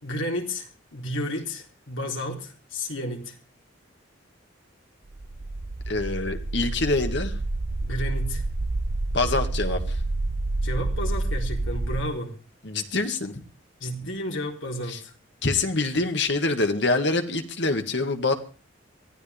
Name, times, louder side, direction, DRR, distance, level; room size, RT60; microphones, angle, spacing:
voice 1, 0.0-3.4 7.8-8.4 10.6-12.3 13.8-15.1, left 1 dB, 80° left, 1 dB, 3.8 m, -32 dB
sound 1, 5.1-12.0, right 2 dB, 40° right, 0.7 m, -28 dB
voice 2, 5.9-7.3 9.1-10.0 12.6-13.4 14.9-15.0 15.4-18.3, left 3 dB, 65° left, 6 dB, 2.1 m, -25 dB
23.5 x 15.0 x 3.5 m, 0.36 s
head